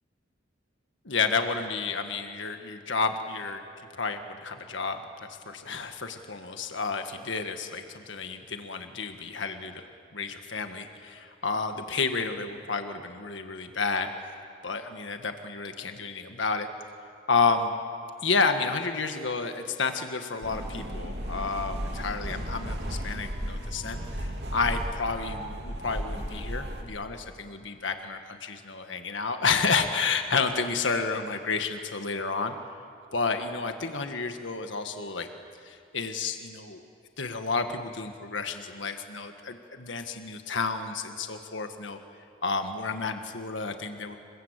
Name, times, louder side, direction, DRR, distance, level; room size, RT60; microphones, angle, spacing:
voice 1, 1.0-3.6 3.9-9.9 10.1-14.1 14.6-16.7 17.3-17.8 18.2-32.5 33.1-35.3 35.6-36.8 37.2-42.0 42.4-44.2, left 4 dB, 75° left, 6 dB, 1.6 m, -30 dB
sound 1, 20.4-26.8, equal, 60° right, 3.0 m, -35 dB
28.0 x 23.0 x 8.2 m, 2.4 s
head